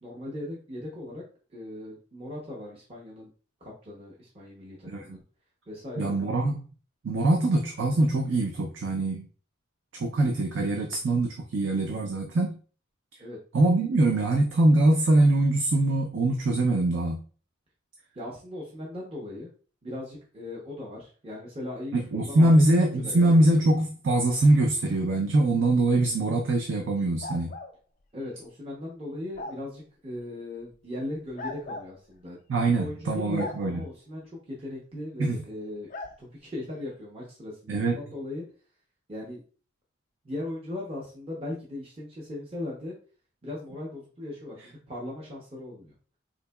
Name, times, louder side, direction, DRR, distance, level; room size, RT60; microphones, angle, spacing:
voice 1, 0.0-1.2 1.5-3.3 3.6-5.2 5.7-6.3 13.2-13.4 18.1-19.5 19.8-22.6 23.0-23.5 28.1-32.4 32.7-35.9 36.2-38.5 39.1-39.4 40.2-43.0 43.4-45.9, left 1 dB, 30° right, -4 dB, 0.7 m, -38 dB
voice 2, 4.9-5.2 6.0-6.6 7.0-9.3 9.9-12.6 13.5-17.2 21.9-27.5 32.5-33.8 35.2-35.4 37.7-38.0, right 2 dB, 70° right, 2 dB, 0.5 m, -23 dB
sound 1, 27.2-27.7 29.4-29.6 31.4-31.9 33.3-33.6 35.9-36.1, left 2 dB, 40° left, 0.4 m, -37 dB
3.8 x 2.8 x 2.2 m, 0.38 s
head